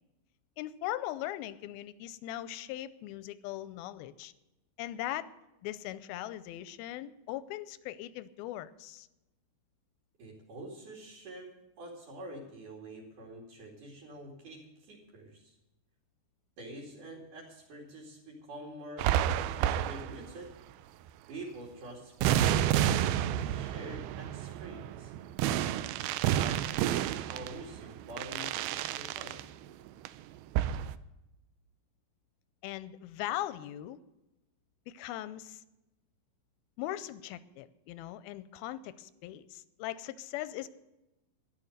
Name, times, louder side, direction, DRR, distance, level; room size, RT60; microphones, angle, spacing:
voice 1, 0.6-4.3 4.8-5.3 5.6-9.1 32.6-34.0 34.9-35.6 36.8-40.7, left 14 dB, 90° left, 15 dB, 2.5 m, -39 dB
voice 2, 10.2-15.6 16.6-19.1 19.6-20.5 21.3-25.1 26.3-29.5, right 1 dB, 60° right, -4 dB, 3.9 m, -46 dB
sound 1, 19.0-20.4 22.2-29.5 29.9-30.2 30.6-31.0, right 11 dB, 85° right, 2.5 m, -30 dB
13.5 x 11.0 x 6.6 m, 0.98 s
omnidirectional pair, 4.3 m